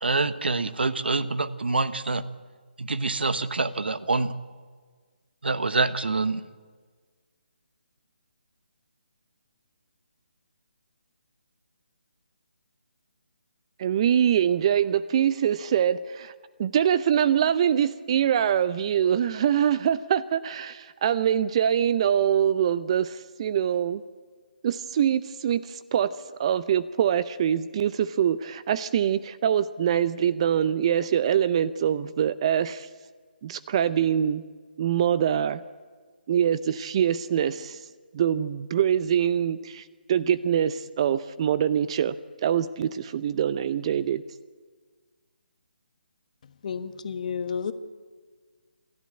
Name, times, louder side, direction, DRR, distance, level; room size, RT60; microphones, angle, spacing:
voice 1, 0.0-2.2 2.8-4.3 5.4-6.4, right 3 dB, 75° right, 14 dB, 1.1 m, -26 dB
voice 2, 13.8-16.3 16.6-24.0 24.6-26.1 26.4-32.9 33.4-34.4 34.8-35.6 36.3-37.8 38.1-42.2 42.4-44.2, right 9 dB, 35° right, 16 dB, 0.5 m, -24 dB
voice 3, 46.6-47.7, left 6 dB, 45° left, 10 dB, 1.4 m, -31 dB
27.5 x 12.5 x 8.8 m, 1.5 s
figure-of-eight pair, 150°, 6 cm